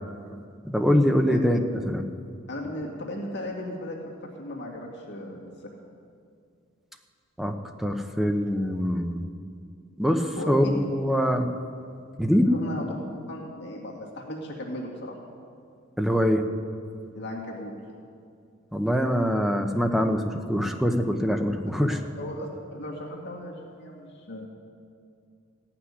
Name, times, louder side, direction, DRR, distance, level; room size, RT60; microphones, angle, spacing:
voice 1, 0.6-1.6 1.9-2.0 7.4-9.2 10.0-11.5 12.2-12.5 16.0-16.4 18.7-22.0, equal, ahead, 5 dB, 0.8 m, -24 dB
voice 2, 2.5-5.5 10.4-10.7 12.3-12.9 13.3-15.2 17.1-17.7 21.7-24.5, left 1 dB, 60° left, -2 dB, 2.0 m, -36 dB
16.0 x 6.0 x 9.7 m, 2.3 s
head